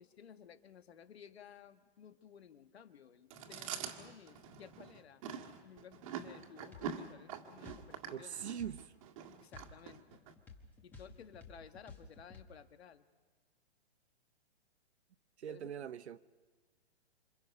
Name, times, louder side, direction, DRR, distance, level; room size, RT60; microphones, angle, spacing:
voice 1, 0.0-5.3 5.6-8.5 9.3-10.2 10.8-13.1 15.5-15.9, left 8 dB, 75° left, 1.8 m, -56 dB
Chewing mastication, 3.3-10.3, right 7 dB, 30° right, 1.8 m, -45 dB
sound 1, 6.7-7.0 7.7-7.9 8.6-8.8 9.5-12.5, left 4 dB, 5° left, 1.3 m, -54 dB
voice 2, 8.1-8.9 15.4-16.2, right 9 dB, 85° right, 1.2 m, -42 dB
28.0 x 27.0 x 5.4 m
hypercardioid pair, 170°, 32 cm